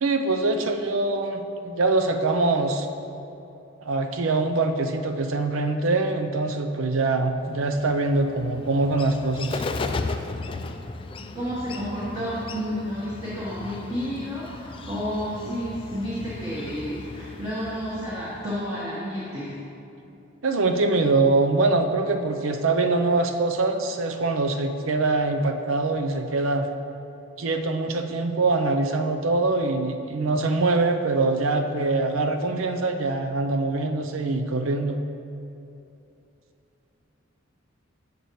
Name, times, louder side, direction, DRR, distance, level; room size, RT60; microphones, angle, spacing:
voice 1, 0.0-2.9 3.8-9.6 20.4-26.7 27.4-35.0, right 3 dB, 80° right, 6 dB, 0.6 m, -23 dB
Bird, 7.4-18.9, left 3 dB, 25° left, 0.3 m, -36 dB
voice 2, 11.2-19.5, equal, 15° right, -9 dB, 1.4 m, -31 dB
11.0 x 6.8 x 3.1 m, 2.8 s
head